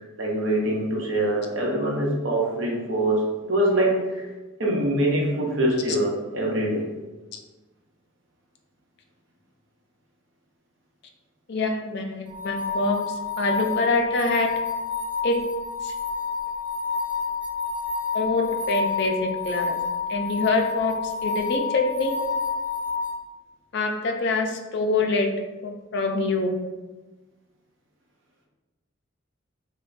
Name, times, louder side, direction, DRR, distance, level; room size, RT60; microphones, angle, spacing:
voice 1, 0.2-4.0 4.6-6.9, right 1 dB, 60° right, -2 dB, 0.9 m, -24 dB
voice 2, 11.5-14.5 15.2-15.4 15.8-15.9 18.1-19.8 20.1-22.1 23.7-25.3 25.6-26.5, left 3 dB, 55° left, 3 dB, 0.4 m, -25 dB
sound 1, 12.3-23.1, left 5 dB, 10° right, 0.4 m, -29 dB
3.3 x 2.2 x 3.9 m, 1.2 s
head